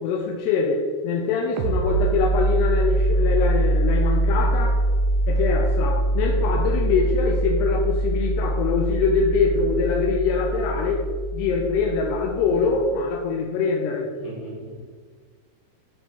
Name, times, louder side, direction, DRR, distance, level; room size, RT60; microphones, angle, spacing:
voice 1, 0.0-4.8 5.3-11.1 11.3-14.1, left 4 dB, 80° left, 0 dB, 2.6 m, -24 dB
sound 1, 1.6-12.9, right 1 dB, 80° right, 2.9 m, -23 dB
voice 2, 6.4-6.8 14.2-14.8, right 1 dB, 50° left, -6 dB, 4.0 m, -37 dB
11.0 x 4.8 x 4.6 m, 1.6 s
omnidirectional pair, 5.3 m